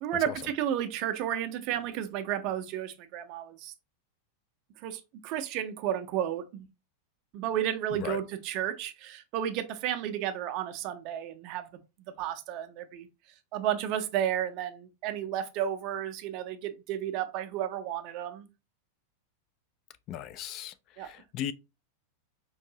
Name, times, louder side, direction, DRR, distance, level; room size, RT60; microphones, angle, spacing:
voice 1, 0.0-3.7 4.8-6.7 7.3-11.7 12.2-13.1 13.5-18.5 21.0-21.1, right 10 dB, 45° right, 0.6 m, -32 dB
voice 2, 20.1-21.5, left 10 dB, 40° left, 0.3 m, -37 dB
4.6 x 2.6 x 2.8 m
figure-of-eight pair, 90°, 0 cm